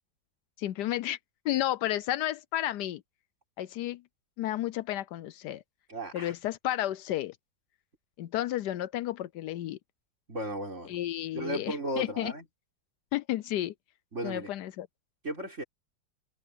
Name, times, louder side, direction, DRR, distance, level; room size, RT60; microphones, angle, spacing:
voice 1, 0.6-1.2 1.4-3.0 3.6-4.0 4.4-5.6 6.1-7.4 8.2-9.8 10.9-12.3 13.1-13.7 14.2-14.9, left 13 dB, 75° left, 1.2 m, -32 dB
voice 2, 5.9-6.3 10.3-11.0 11.3-12.4 14.1-14.5 15.2-15.6, right 1 dB, 40° right, 5.3 m, -35 dB
omnidirectional pair, 1.8 m